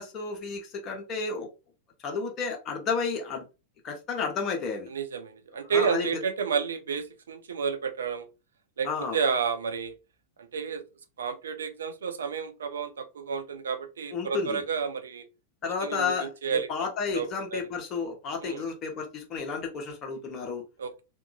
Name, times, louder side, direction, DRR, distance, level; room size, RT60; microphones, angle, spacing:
voice 1, 0.0-1.5 2.0-3.4 3.8-4.9 5.7-6.1 8.8-9.2 14.1-14.6 15.6-20.6, left 5 dB, 30° left, 0.9 m, -32 dB
voice 2, 4.9-8.3 8.8-10.0 10.4-10.8 11.2-15.2 15.8-16.7 17.1-17.6 18.4-18.6 20.8-21.0, right 6 dB, 65° right, 0.4 m, -31 dB
2.8 x 2.4 x 2.2 m
figure-of-eight pair, 90°, 0 cm